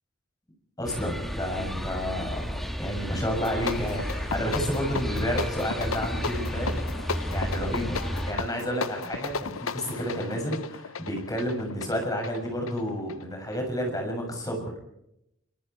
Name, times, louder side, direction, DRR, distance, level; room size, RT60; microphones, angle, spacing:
voice 1, 0.8-6.8 7.3-8.0 8.3-14.7, equal, 20° left, 2 dB, 7.1 m, -31 dB
sound 1, 0.8-8.3, equal, ahead, 2.5 m, -32 dB
sound 2, 3.3-13.7, left 4 dB, 90° left, 0.9 m, -35 dB
25.0 x 24.5 x 4.6 m, 0.80 s
head